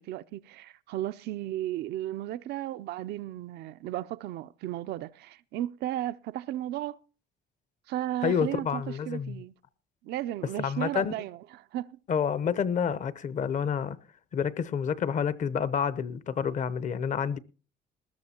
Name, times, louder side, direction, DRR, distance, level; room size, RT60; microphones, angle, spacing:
voice 1, 0.0-7.0 7.9-9.5 10.0-11.4 11.7-11.9, right 13 dB, 75° right, 0.5 m, -34 dB
voice 2, 8.2-9.4 10.6-11.1 12.1-14.0 14.3-17.4, left 7 dB, 45° left, 0.8 m, -29 dB
20.0 x 13.5 x 2.9 m
cardioid pair, 110°, 17 cm